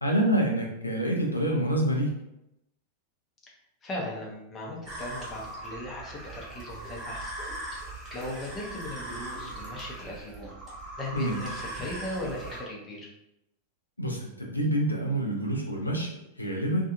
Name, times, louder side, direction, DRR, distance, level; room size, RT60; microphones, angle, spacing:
voice 1, 0.0-2.2 11.1-11.4 14.0-16.9, right 1 dB, 85° left, 0 dB, 0.5 m, -27 dB
voice 2, 3.8-7.3 8.1-10.5 11.0-13.1, left 1 dB, 20° left, -2 dB, 0.8 m, -38 dB
sound 1, 4.8-12.6, right 1 dB, 25° right, 1.1 m, -40 dB
2.6 x 2.4 x 2.5 m, 0.86 s
figure-of-eight pair, 90°, 0 cm